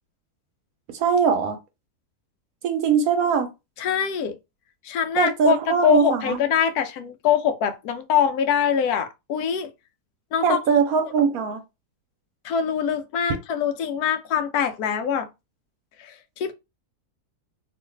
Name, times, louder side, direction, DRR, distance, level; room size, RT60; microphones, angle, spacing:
voice 1, 0.9-1.6 2.6-3.5 5.2-6.4 10.4-11.6, right 6 dB, 70° right, 1.0 m, -21 dB
voice 2, 3.8-4.4 4.8-5.6 5.8-9.7 10.3-10.6 12.4-15.3 16.0-16.5, left 8 dB, 75° left, 1.1 m, -23 dB
3.0 x 2.4 x 3.2 m
omnidirectional pair, 1.7 m